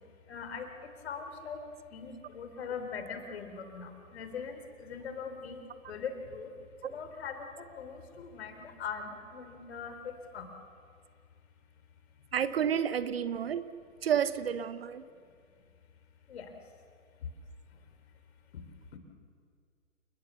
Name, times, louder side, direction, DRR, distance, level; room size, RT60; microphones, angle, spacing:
voice 1, 0.3-0.7 1.0-1.6 1.9-6.5 6.8-10.5 16.3-16.5 18.5-18.6 18.9-19.0, left 6 dB, 50° left, 7 dB, 3.5 m, -41 dB
voice 2, 12.3-13.6 14.0-15.0, right 8 dB, 45° right, 14 dB, 0.9 m, -30 dB
28.5 x 20.5 x 7.0 m, 2.1 s
figure-of-eight pair, 135°, 41 cm